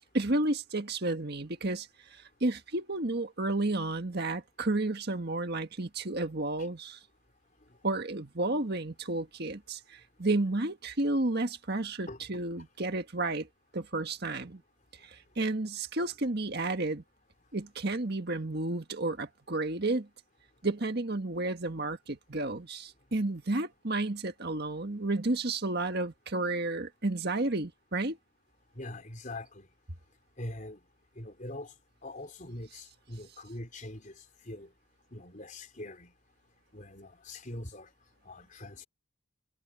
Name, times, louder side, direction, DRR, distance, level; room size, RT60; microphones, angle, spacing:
voice 1, 0.1-7.0 7.8-13.5 13.7-14.6 15.0-17.0 17.5-20.1 20.6-28.2, right 2 dB, 50° right, 1.7 m, -32 dB
voice 2, 12.1-12.4 28.7-29.7 30.4-30.8 31.2-31.7 32.0-34.7 35.1-36.1 36.7-37.9 38.3-38.9, left 1 dB, 40° left, 4.2 m, -43 dB
head